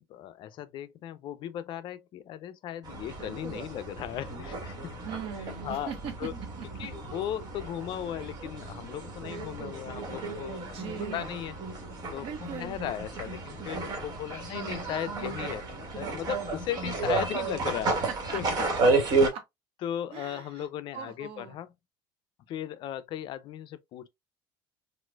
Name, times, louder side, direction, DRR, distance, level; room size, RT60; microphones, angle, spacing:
voice 1, 0.0-5.0 5.6-5.9 6.2-6.3 6.8-10.6 11.0-11.5 12.1-12.3 12.6-15.6 15.9-18.0 18.3-18.4 19.8-21.7 22.5-24.1, left 11 dB, 55° left, 0.4 m, -36 dB
sound 1, 2.8-19.3, right 3 dB, 40° right, 1.4 m, -32 dB
voice 2, 5.0-6.3 6.6-6.9 10.6-11.4 12.2-12.8 18.0-18.9 19.3-19.4 20.1-21.6, right 7 dB, 65° right, 1.3 m, -40 dB
4.1 x 2.5 x 2.3 m
cardioid pair, 140°, 10 cm